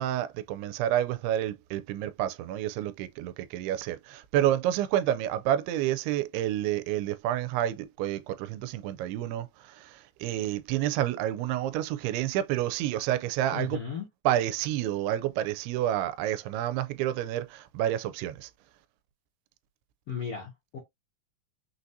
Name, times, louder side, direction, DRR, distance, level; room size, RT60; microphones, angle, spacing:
voice 1, 0.0-13.8 14.3-18.5, right 12 dB, 90° right, 2.6 m, -29 dB
voice 2, 13.5-14.1 20.1-20.8, left 7 dB, 60° left, 1.5 m, -35 dB
6.1 x 2.6 x 2.6 m
omnidirectional pair, 4.5 m